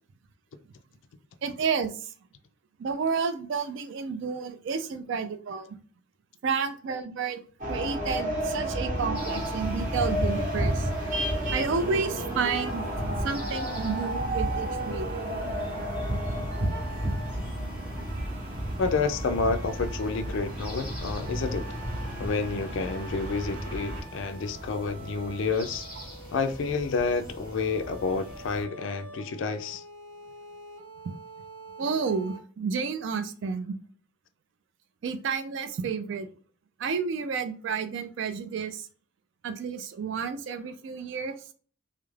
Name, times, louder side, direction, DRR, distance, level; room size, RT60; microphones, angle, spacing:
voice 1, 1.4-2.1 2.8-5.8 6.4-7.4 7.7-10.9 11.5-15.1 31.0-31.1 31.8-33.8 35.0-36.3 36.8-38.9 39.4-41.4, right 5 dB, 60° right, 0.3 m, -31 dB
sound 1, 7.6-24.0, right 1 dB, 40° right, 0.8 m, -31 dB
sound 2, 9.1-28.6, equal, 5° right, 0.9 m, -43 dB
sound 3, 13.3-32.4, right 2 dB, 90° right, 1.0 m, -48 dB
voice 2, 18.8-21.6 22.2-25.9 26.3-29.8, left 4 dB, 60° left, 0.3 m, -29 dB
2.3 x 2.0 x 3.1 m
head